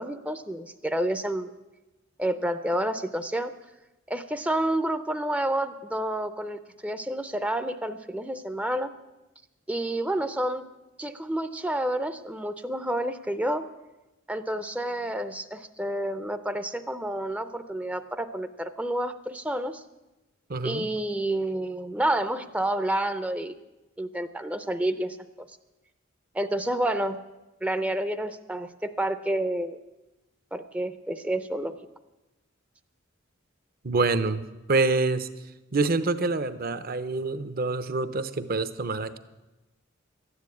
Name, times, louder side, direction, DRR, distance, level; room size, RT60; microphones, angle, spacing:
voice 1, 0.0-1.5 2.2-3.5 4.1-8.9 9.7-10.7 11.0-13.7 14.3-19.8 20.6-23.5 24.0-25.2 26.3-27.2 27.6-29.8 30.5-31.8, right 1 dB, 5° right, 10 dB, 0.5 m, -29 dB
voice 2, 20.5-20.9 33.8-34.4 34.7-35.3 35.7-39.2, right 3 dB, 50° right, 12 dB, 0.7 m, -26 dB
13.0 x 9.8 x 8.4 m, 1.0 s
head